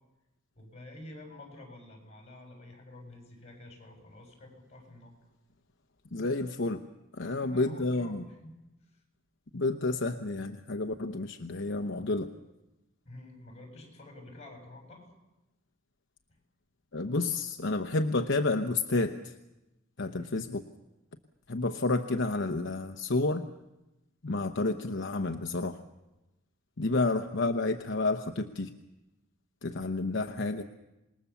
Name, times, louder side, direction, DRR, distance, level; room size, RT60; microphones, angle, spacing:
voice 1, 0.5-5.1 7.2-8.6 8.9-9.0 13.0-15.1 20.1-20.4 26.8-27.1, left 1 dB, 35° left, 3 dB, 6.8 m, -49 dB
voice 2, 6.1-6.8 7.1-8.2 9.5-12.3 16.9-19.3 20.0-20.6 21.5-23.5 24.2-25.8 26.8-28.8 29.6-30.6, left 2 dB, 60° left, 6 dB, 0.9 m, -30 dB
26.5 x 20.5 x 7.1 m, 1.0 s
head